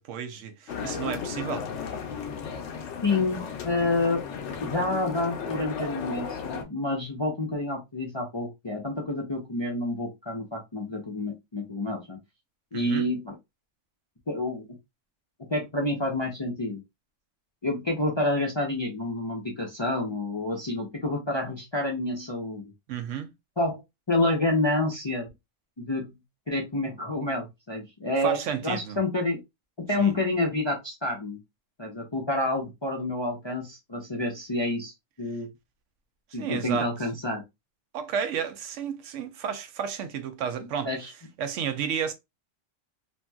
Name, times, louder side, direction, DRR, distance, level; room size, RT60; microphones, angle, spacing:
voice 1, 0.0-1.7 12.7-13.1 22.9-23.3 28.2-29.0 30.0-30.1 36.3-36.9 37.9-40.9 41.4-42.1, right 8 dB, 75° right, 0.9 m, -32 dB
sound 1, 0.7-6.6, left 6 dB, 75° left, 0.9 m, -35 dB
voice 2, 3.0-4.2 4.6-12.2 12.7-13.3 14.3-14.7 15.5-16.8 17.6-22.7 23.6-23.8 24.1-25.3 25.8-26.1 26.5-28.4 28.6-29.4 29.8-31.4 31.8-34.9 35.2-35.5 36.3-37.4 40.8-41.1, left 2 dB, 35° left, 0.5 m, -28 dB
2.9 x 2.7 x 2.2 m
omnidirectional pair, 1.3 m